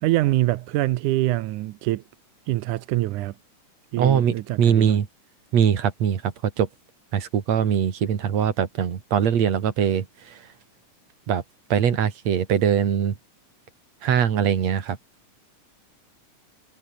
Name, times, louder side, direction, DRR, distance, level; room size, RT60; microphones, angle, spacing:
voice 1, 0.0-2.0 2.5-3.3 3.9-5.0, right 16 dB, 75° right, 2.2 m, -24 dB
voice 2, 4.0-5.1 5.5-6.3 6.6-6.7 7.1-10.1 11.3-11.4 11.7-13.1 14.0-15.0, right 8 dB, 55° right, 3.2 m, -21 dB
omnidirectional pair, 3.7 m